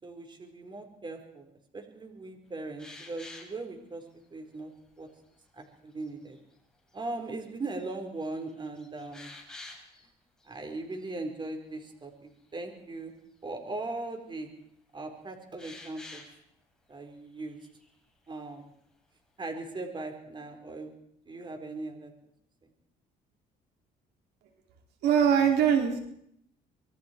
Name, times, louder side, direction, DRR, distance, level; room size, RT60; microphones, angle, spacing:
voice 1, 0.0-4.0 4.3-4.7 5.0-5.1 5.6-6.4 6.9-9.3 10.5-13.1 13.4-14.5 14.9-16.2 16.9-17.6 18.3-18.7 19.4-20.9 21.3-22.1, right 2 dB, 25° right, 5 dB, 4.8 m, -39 dB
sound 1, 2.8-3.6 4.2-4.3 4.9-5.3 5.9-6.4 6.9-7.0 7.5-7.9 8.2-10.1 10.4-10.6 10.9-11.1 15.6-16.4 17.4-17.9, left 2 dB, 5° left, 6.9 m, -49 dB
voice 2, 25.0-26.0, right 8 dB, 80° right, 3 dB, 4.6 m, -22 dB
26.5 x 23.5 x 4.8 m, 0.69 s
cardioid pair, 110°, 17 cm